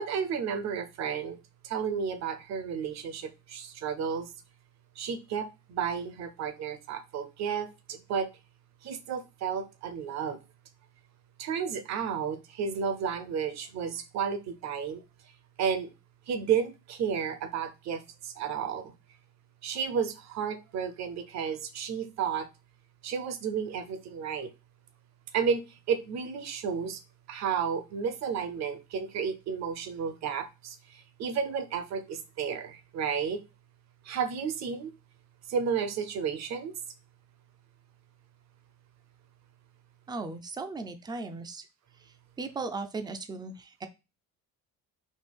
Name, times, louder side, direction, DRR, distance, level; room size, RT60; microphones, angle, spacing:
voice 1, 0.0-1.4 1.6-4.3 5.0-8.3 8.8-10.4 11.4-15.0 15.6-15.9 16.3-18.9 19.6-22.5 23.0-24.5 25.3-27.0 27.3-33.4 34.0-34.9 35.5-36.7, right 7 dB, 50° right, 0.7 m, -32 dB
voice 2, 40.1-41.6 42.4-43.9, right 3 dB, 15° right, 0.4 m, -37 dB
4.3 x 2.8 x 3.4 m
cardioid pair, 130°, 34 cm